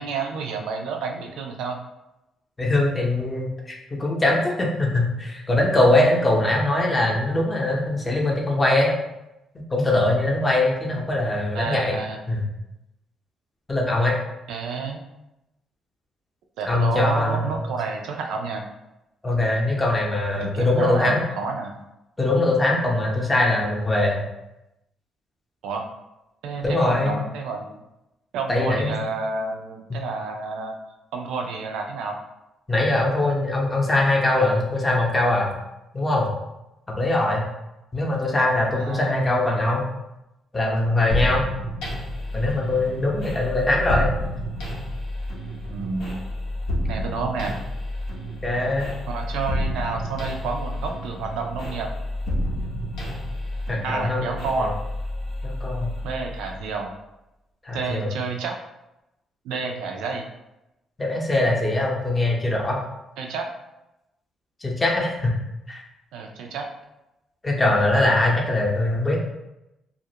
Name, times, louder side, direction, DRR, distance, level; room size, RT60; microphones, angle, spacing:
voice 1, 0.0-1.8 11.5-12.2 14.5-15.0 16.6-18.7 20.4-21.8 25.6-25.9 26.4-27.7 28.3-30.7 31.1-32.2 38.8-39.3 45.7-46.2 46.9-47.6 49.1-51.9 53.8-54.8 56.0-56.9 57.7-58.6 59.4-60.3 63.2-63.5 66.1-66.7, right 4 dB, 90° right, 3 dB, 0.3 m, -30 dB
voice 2, 2.6-8.9 9.7-12.0 12.3-12.4 13.7-14.2 16.7-17.5 19.2-21.2 22.2-24.2 26.6-27.2 28.5-29.0 29.9-30.0 32.7-35.5 35.9-36.3 37.0-37.4 37.9-39.9 40.5-41.4 42.3-44.1 48.4-48.9 53.7-54.3 54.6-54.7 55.4-55.9 57.6-58.1 61.0-62.8 64.6-65.3 65.7-65.8 67.4-69.2, left 2 dB, 20° left, -2 dB, 0.6 m, -22 dB
sound 1, 41.1-56.7, left 1 dB, 85° left, 0.6 m, -30 dB
2.3 x 2.0 x 2.8 m, 0.92 s
cardioid pair, 90°, 0 cm